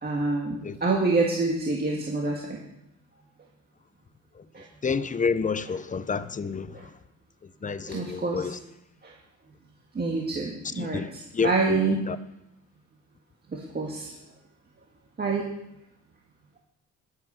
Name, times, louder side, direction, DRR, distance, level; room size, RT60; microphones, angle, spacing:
voice 1, 0.0-2.6 4.6-4.7 7.9-8.5 10.0-12.0 13.5-14.1 15.2-15.5, right 3 dB, 30° right, 1.8 m, -27 dB
voice 2, 4.8-6.8 7.6-8.6 10.8-11.1 11.3-12.2, left 5 dB, 25° left, 0.7 m, -29 dB
11.0 x 8.0 x 5.5 m
cardioid pair, 90°, 30 cm